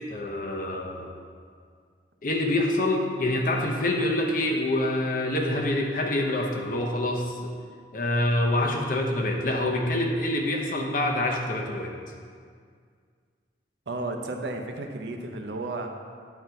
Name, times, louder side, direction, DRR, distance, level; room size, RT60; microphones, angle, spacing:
voice 1, 0.1-1.1 2.2-7.5 7.9-11.9, left 1 dB, 50° left, 1 dB, 0.8 m, -26 dB
voice 2, 13.9-15.9, right 2 dB, 70° right, 4 dB, 0.7 m, -33 dB
9.2 x 4.0 x 4.5 m, 2.1 s
head